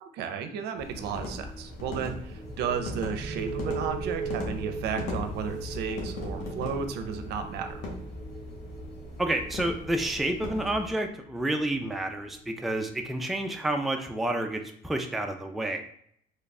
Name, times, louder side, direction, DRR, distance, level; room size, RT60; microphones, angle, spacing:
voice 1, 0.0-7.7, right 7 dB, 75° right, 7 dB, 0.5 m, -33 dB
sound 1, 0.8-10.9, left 1 dB, 80° left, 1.0 m, -39 dB
sound 2, 2.2-13.8, right 3 dB, 30° right, 0.8 m, -40 dB
voice 2, 9.2-15.8, right 1 dB, ahead, 4 dB, 0.3 m, -29 dB
3.1 x 2.3 x 4.0 m, 0.67 s
cardioid pair, 110°, 17 cm